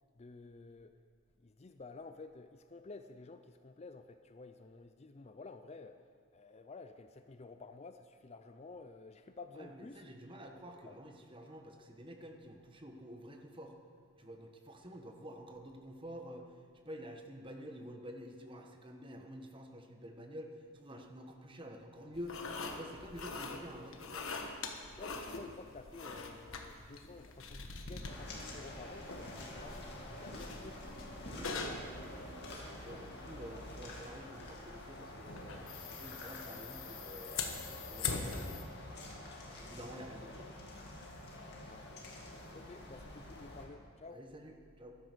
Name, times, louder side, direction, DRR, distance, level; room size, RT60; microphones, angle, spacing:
voice 1, 0.2-0.9 1.4-6.0 6.3-10.0 10.6-11.0 25.0-29.9 30.1-30.8 32.9-33.0 33.5-33.8 41.6-42.3 42.5-44.2, left 3 dB, 30° left, 9 dB, 0.4 m, -52 dB
voice 2, 9.6-13.7 14.2-16.5 16.8-22.4 22.7-24.3 31.3-32.3 32.8-37.3 37.8-38.7 39.4-40.6 44.1-45.0, equal, 25° right, 3 dB, 1.2 m, -49 dB
sound 1, 22.1-38.6, left 4 dB, 65° left, 1.3 m, -44 dB
sound 2, 28.0-43.7, left 1 dB, 50° left, 2.3 m, -48 dB
14.5 x 12.0 x 6.2 m, 2.1 s
head